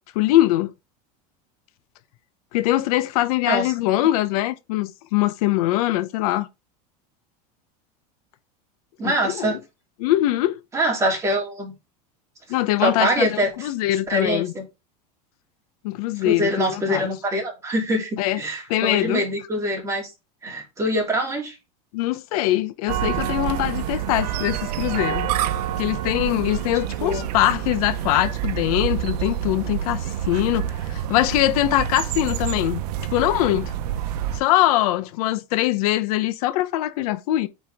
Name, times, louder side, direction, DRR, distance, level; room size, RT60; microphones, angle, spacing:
voice 1, 0.1-0.7 2.5-6.5 9.0-9.6 10.0-10.6 12.5-14.5 15.8-17.1 18.2-18.4 18.7-19.2 21.9-25.3 25.8-32.8 33.1-33.7 34.3-37.5, left 15 dB, 65° left, 0.8 m, -22 dB
voice 2, 9.0-9.6 10.7-11.7 12.8-13.5 14.1-14.6 16.2-20.1 20.4-21.6 27.0-27.2, right 1 dB, 15° right, 3.2 m, -24 dB
sound 1, 22.9-34.4, right 10 dB, 80° right, 0.8 m, -27 dB
9.0 x 4.4 x 3.6 m
supercardioid pair, 145°, 20 cm